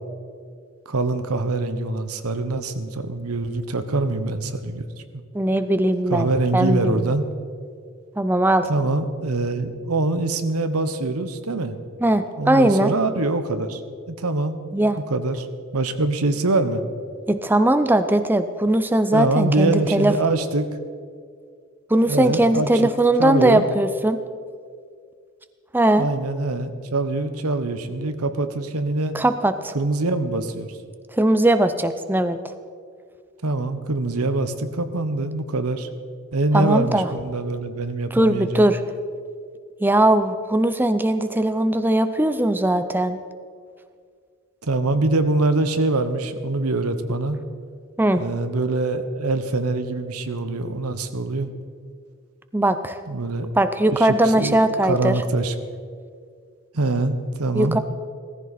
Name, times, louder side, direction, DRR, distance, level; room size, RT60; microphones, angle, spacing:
voice 1, 0.9-4.8 5.1-5.2 6.1-7.3 8.7-11.8 12.4-13.8 14.1-14.6 14.9-15.5 15.7-16.8 19.1-20.7 22.0-22.9 23.2-23.7 26.0-29.1 29.7-30.8 33.4-35.9 36.3-38.7 44.6-47.4 48.2-51.5 53.1-53.6 53.9-55.5 56.7-57.8, right 2 dB, 90° right, 9 dB, 1.0 m, -24 dB
voice 2, 5.3-7.1 8.2-8.7 12.0-12.9 14.7-15.0 17.3-20.1 21.9-24.2 25.7-26.1 29.1-29.7 31.2-32.4 36.5-37.1 38.1-38.8 39.8-43.2 48.0-48.3 52.5-53.0 53.6-55.2 57.5-57.8, right 1 dB, 10° right, 10 dB, 0.4 m, -19 dB
17.0 x 14.5 x 4.2 m, 2.1 s
head